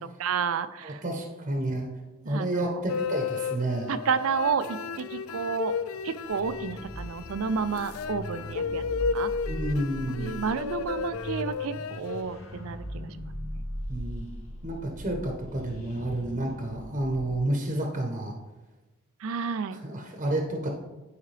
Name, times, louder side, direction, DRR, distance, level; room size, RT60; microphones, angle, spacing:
voice 1, 0.2-1.0 2.2-2.9 3.9-5.7 6.0-8.8 9.1-9.3 10.1-13.5 19.2-19.8, right 6 dB, 80° right, 12 dB, 0.4 m, -31 dB
voice 2, 0.8-1.9 2.3-3.9 9.5-10.3 13.9-14.3 14.6-18.3 19.8-20.7, right 1 dB, 35° right, 2 dB, 0.9 m, -30 dB
sound 1, 2.9-12.2, left 5 dB, 85° left, 0.4 m, -33 dB
sound 2, 6.2-17.3, equal, 70° left, 1.1 m, -39 dB
10.0 x 4.8 x 3.3 m, 1.1 s
head